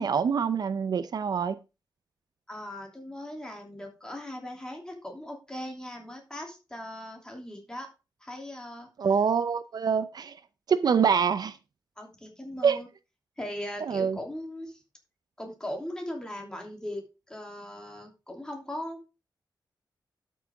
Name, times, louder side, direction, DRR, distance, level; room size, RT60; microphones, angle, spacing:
voice 1, 0.0-1.6 9.0-10.4 10.7-11.6 12.6-12.8 13.8-14.2, right 6 dB, 65° right, 0.6 m, -25 dB
voice 2, 2.5-7.9 8.2-8.9 12.0-12.9 13.4-14.8 15.4-19.1, left 1 dB, 10° left, 2.8 m, -39 dB
12.0 x 6.2 x 3.5 m
wide cardioid pair, 140°, 7 cm